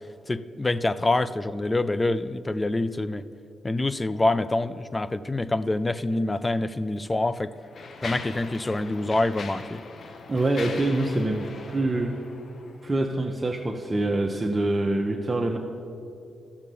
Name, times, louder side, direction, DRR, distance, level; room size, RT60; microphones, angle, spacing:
voice 1, 0.3-3.2 3.6-7.5 8.0-9.8, left 2 dB, 25° left, 14 dB, 0.5 m, -26 dB
Mechanisms, 6.4-6.5 7.2-13.0, left 4 dB, 60° left, 1.0 m, -40 dB
voice 2, 10.3-12.2 12.8-15.6, right 2 dB, 25° right, 2 dB, 0.9 m, -25 dB
12.0 x 7.3 x 6.9 m, 2.5 s
supercardioid pair, 50°, 0 cm